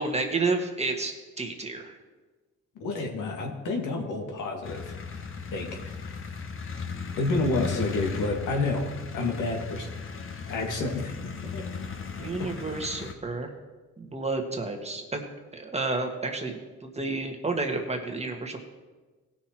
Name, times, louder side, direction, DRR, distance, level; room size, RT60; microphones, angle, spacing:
voice 1, 0.0-2.0 12.2-13.5 14.0-15.2 15.5-18.6, right 3 dB, 20° right, 3 dB, 1.6 m, -30 dB
voice 2, 2.8-4.9 5.5-6.2 7.2-8.9 9.1-9.9 10.4-11.7 12.2-12.5, left 3 dB, 80° left, 1 dB, 2.0 m, -30 dB
sound 1, 4.6-13.1, left 5 dB, 45° left, 1.2 m, -37 dB
17.0 x 6.1 x 4.5 m, 1.3 s
cardioid pair, 90°, 30 cm